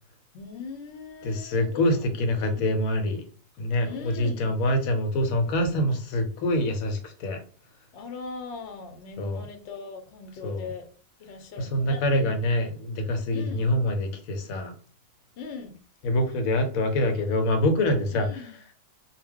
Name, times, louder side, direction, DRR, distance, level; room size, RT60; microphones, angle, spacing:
voice 1, 0.3-2.1 2.5-2.7 3.8-4.5 7.9-10.9 11.2-12.4 13.3-13.7 15.4-15.8 18.1-18.5, left 4 dB, 60° left, 0.8 m, -40 dB
voice 2, 1.2-3.2 3.6-7.4 9.2-9.5 10.4-10.7 11.6-14.7 16.0-18.6, left 1 dB, 85° left, 1.0 m, -25 dB
2.3 x 2.2 x 3.5 m
omnidirectional pair, 1.5 m